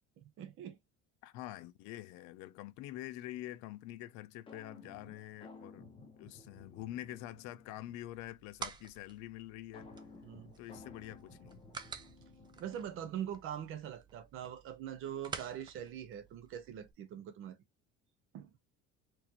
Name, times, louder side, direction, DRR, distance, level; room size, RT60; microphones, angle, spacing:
voice 1, 0.4-0.8 10.2-10.5 12.6-17.6 18.3-18.5, right 10 dB, 45° right, 0.8 m, -43 dB
voice 2, 1.2-5.9 6.2-9.9 10.6-11.6, left 15 dB, 75° left, 0.6 m, -46 dB
Lfo'ing, 4.5-8.2 9.7-13.3, left 3 dB, 20° left, 0.8 m, -55 dB
sound 1, 8.0-16.9, right 5 dB, 15° right, 0.4 m, -50 dB
4.5 x 2.6 x 2.8 m
cardioid pair, 175°, 29 cm